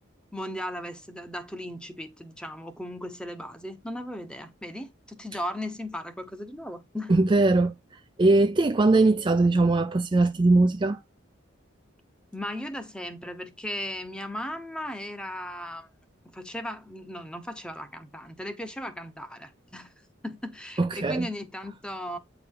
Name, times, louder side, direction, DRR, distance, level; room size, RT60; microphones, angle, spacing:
voice 1, 0.3-7.1 12.3-15.9 16.3-19.9 20.2-22.2, equal, 5° left, 0.8 m, -36 dB
voice 2, 7.1-7.7 8.2-11.0 20.8-21.3, right 2 dB, 25° right, 0.4 m, -21 dB
8.6 x 4.6 x 3.7 m
head